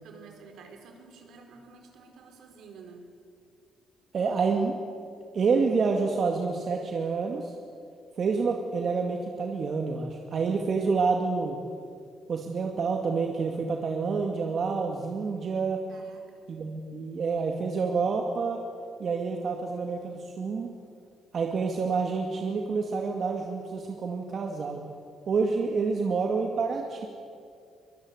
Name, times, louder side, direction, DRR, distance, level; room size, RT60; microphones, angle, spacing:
voice 1, 0.0-3.1 15.9-16.5, right 5 dB, 75° right, 4 dB, 4.6 m, -50 dB
voice 2, 4.1-4.8 5.3-7.5 8.2-11.6 12.3-15.8 16.5-18.6 19.0-20.7 21.3-24.8 25.3-27.1, right 4 dB, 55° right, 2 dB, 2.2 m, -28 dB
23.5 x 21.0 x 8.2 m, 2.3 s
cardioid pair, 90°, 0 cm